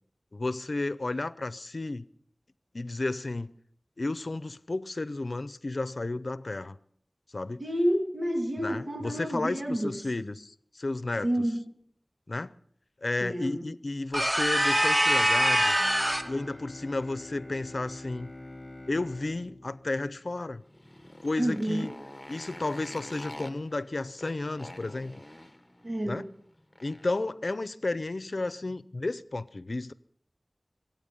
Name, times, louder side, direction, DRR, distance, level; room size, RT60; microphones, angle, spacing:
voice 1, 0.3-2.1 2.7-3.5 4.0-6.8 7.3-7.6 8.6-11.3 12.3-12.5 13.0-15.8 16.2-18.3 18.9-20.6 21.2-21.9 22.3-25.2 26.0-26.2 26.8-29.9, left 2 dB, 80° left, 0.6 m, -32 dB
voice 2, 7.6-10.0 11.2-11.8 13.2-13.7 21.4-21.9 25.8-26.3, equal, 65° right, 2.0 m, -29 dB
sound 1, 14.1-16.4, right 1 dB, 20° right, 0.6 m, -24 dB
Bowed string instrument, 15.8-20.7, left 1 dB, 10° left, 5.8 m, -46 dB
Motorcycle, 20.6-27.2, left 1 dB, 25° left, 1.1 m, -46 dB
24.0 x 9.1 x 5.3 m
wide cardioid pair, 45°, 0 cm